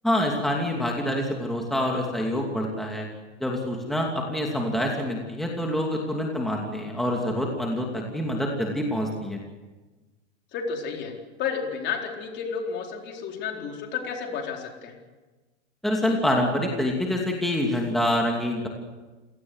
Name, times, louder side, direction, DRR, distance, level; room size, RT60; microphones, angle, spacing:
voice 1, 0.0-3.1 3.4-9.4 15.8-18.7, left 1 dB, ahead, 0 dB, 2.7 m, -26 dB
voice 2, 10.5-11.1 11.4-14.9, left 6 dB, 30° left, 2 dB, 4.3 m, -31 dB
28.0 x 18.0 x 8.1 m, 1.2 s
supercardioid pair, 145°, 36 cm